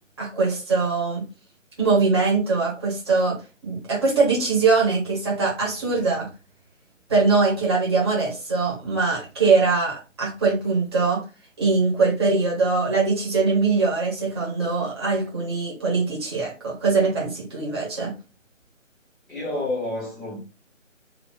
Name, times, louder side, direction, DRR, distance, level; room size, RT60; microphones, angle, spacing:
voice 1, 0.2-1.2 1.8-3.4 3.6-6.3 7.1-11.2 11.6-18.1, right 4 dB, 20° right, 1.1 m, -22 dB
voice 2, 19.3-20.4, left 2 dB, ahead, 0.9 m, -29 dB
2.8 x 2.7 x 3.8 m
figure-of-eight pair, 160°, 39 cm